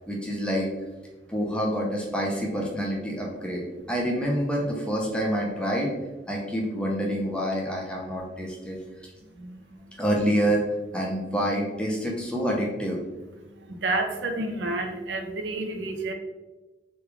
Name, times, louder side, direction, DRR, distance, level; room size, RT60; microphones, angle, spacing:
voice 1, 0.1-0.7 1.3-5.9 6.3-8.8 10.0-10.6 10.9-13.0, equal, 5° left, -2 dB, 0.5 m, -27 dB
voice 2, 9.3-10.0 13.4-16.1, right 2 dB, 85° right, 4 dB, 0.5 m, -31 dB
3.1 x 2.3 x 3.3 m, 1.1 s
head